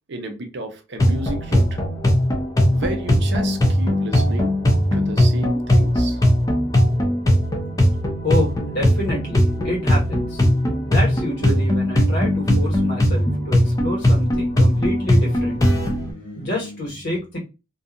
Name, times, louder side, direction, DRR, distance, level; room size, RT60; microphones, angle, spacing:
voice 1, 0.1-1.8 2.7-4.5 4.9-6.2, right 1 dB, 55° right, 4 dB, 0.5 m, -31 dB
sound 1, 1.0-16.1, equal, 15° left, 0.4 m, -19 dB
voice 2, 8.2-10.4 10.9-17.4, left 1 dB, 55° left, -3 dB, 1.4 m, -28 dB
2.6 x 2.3 x 2.5 m, 0.28 s
head